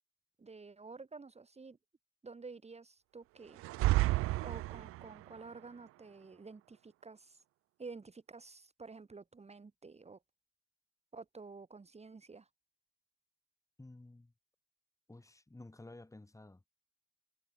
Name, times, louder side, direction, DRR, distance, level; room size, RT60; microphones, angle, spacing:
voice 1, 0.4-1.8 2.2-3.6 4.4-7.4 7.8-10.2 11.1-12.5, right 4 dB, 15° right, 3.8 m, -50 dB
sound 1, 3.6-5.2, right 18 dB, 35° right, 0.5 m, -31 dB
voice 2, 13.8-14.3 15.1-16.6, left 2 dB, 10° left, 4.7 m, -53 dB
hypercardioid pair, 95°, 40 cm